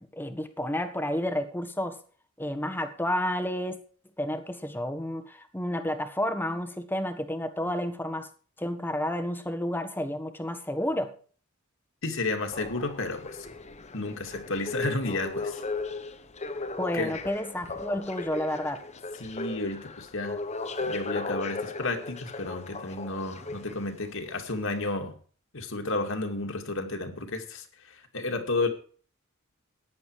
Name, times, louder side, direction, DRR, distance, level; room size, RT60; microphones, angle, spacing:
voice 1, 0.0-2.0 2.4-3.8 4.2-8.3 8.6-11.1 16.8-18.8, left 1 dB, 10° left, 1.4 m, -31 dB
voice 2, 12.0-13.4 13.9-15.6 16.9-17.1 19.2-20.4 20.8-25.2 25.5-28.7, left 2 dB, 65° left, 2.5 m, -32 dB
sound 1, 12.5-24.1 24.8-24.9, left 3 dB, 30° left, 1.1 m, -37 dB
14.5 x 10.5 x 5.0 m
head